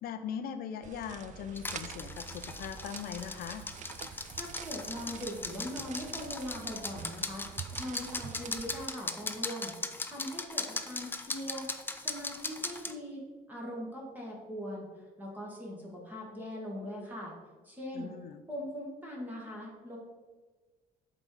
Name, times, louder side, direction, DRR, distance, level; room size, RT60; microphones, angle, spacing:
voice 1, 0.0-3.6 17.9-18.4, left 8 dB, 60° left, 8 dB, 0.6 m, -40 dB
sound 1, 0.8-8.9, right 8 dB, 45° right, 0.4 m, -46 dB
sound 2, 1.5-12.9, left 3 dB, 10° left, 0.5 m, -39 dB
voice 2, 4.4-9.7 10.1-11.7 11.9-17.3 17.6-18.1 18.5-20.0, equal, 10° right, -3 dB, 1.7 m, -41 dB
7.5 x 3.8 x 4.9 m, 1.4 s
cardioid pair, 110°, 17 cm